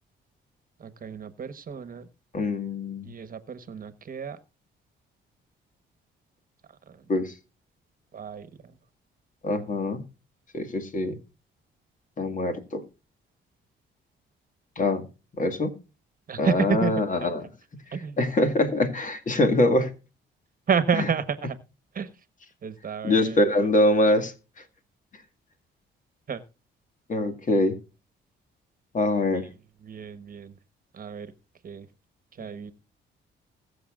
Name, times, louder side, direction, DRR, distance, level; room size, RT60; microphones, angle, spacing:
voice 1, 0.8-2.1 3.0-4.4 6.7-7.1 8.1-8.8 16.3-16.9 17.9-18.2 20.7-21.6 21.9-22.3 22.6-23.4 26.3-26.4 29.3-29.5 29.8-30.6 30.9-31.3 31.6-31.9 32.3-32.7, right 6 dB, 45° right, 13 dB, 1.2 m, -30 dB
voice 2, 2.3-3.1 7.1-7.4 9.4-10.0 10.5-11.2 12.2-12.8 14.8-15.1 15.4-15.7 16.4-17.4 18.2-19.9 23.0-24.6 27.1-27.8 28.9-29.5, left 1 dB, 40° left, 7 dB, 2.0 m, -24 dB
20.5 x 7.0 x 2.5 m, 0.31 s
cardioid pair, 90°, 20 cm